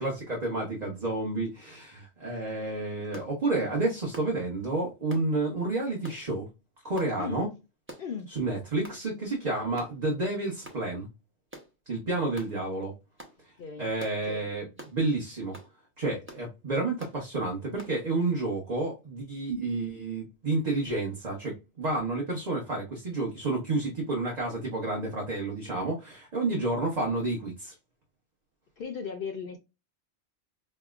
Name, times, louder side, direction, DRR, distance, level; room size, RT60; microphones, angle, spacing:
voice 1, 0.0-6.5 6.8-7.5 8.3-11.1 11.9-12.9 13.8-15.6 16.0-27.7, right 2 dB, 40° right, 1.0 m, -30 dB
sound 1, 3.1-3.3 4.1-4.3 5.1-5.3 6.0-6.2 7.0-7.1 7.9-8.1 8.8-9.0 9.8-10.0 10.6-10.8 11.5-11.7 12.3-12.5 13.2-13.4 14.0-14.2 14.8-15.0 15.5-15.7 16.3-16.5 17.0-17.2 17.8-18.0, right 1 dB, 10° right, 0.8 m, -46 dB
voice 2, 7.2-7.5 8.0-8.3 13.6-13.9 14.3-14.5 28.8-29.6, left 6 dB, 60° left, 0.7 m, -37 dB
5.3 x 2.1 x 2.4 m
omnidirectional pair, 1.1 m